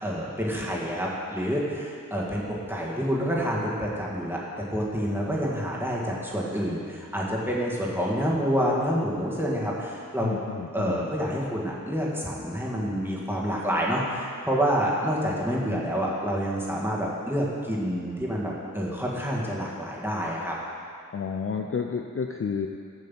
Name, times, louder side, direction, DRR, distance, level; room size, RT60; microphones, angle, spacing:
voice 1, 0.0-10.3 10.7-20.5, equal, 5° right, -5 dB, 1.7 m, -28 dB
voice 2, 10.2-11.1 21.1-22.7, left 6 dB, 40° left, 3 dB, 0.4 m, -31 dB
7.2 x 6.7 x 5.6 m, 2.4 s
wide cardioid pair, 65°, 34 cm